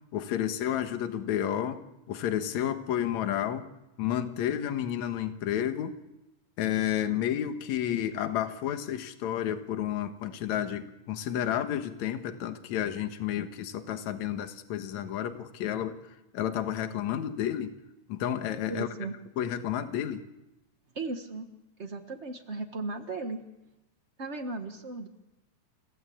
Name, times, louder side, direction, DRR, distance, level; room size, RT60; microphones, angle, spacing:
voice 1, 0.1-1.8 2.1-3.7 4.0-6.0 6.6-16.0 16.3-17.7 18.1-18.9 19.4-20.2, left 10 dB, 65° left, 8 dB, 2.5 m, -31 dB
voice 2, 18.7-19.1 20.9-21.5 21.8-23.4 24.2-25.1, right 3 dB, 75° right, 5 dB, 0.6 m, -36 dB
29.0 x 16.5 x 8.6 m, 0.97 s
omnidirectional pair, 3.8 m